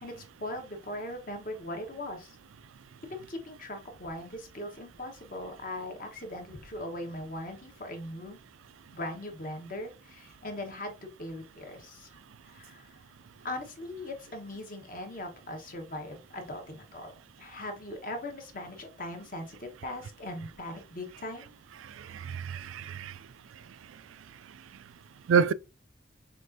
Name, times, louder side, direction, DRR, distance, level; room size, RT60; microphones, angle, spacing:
voice 1, 0.0-2.4 3.1-8.4 8.9-12.1 12.4-13.0 13.4-21.5, left 1 dB, 45° left, 1.1 m, -40 dB
voice 2, 21.8-23.2 25.3-25.5, right 6 dB, 85° right, 0.3 m, -28 dB
6.5 x 2.5 x 2.7 m
head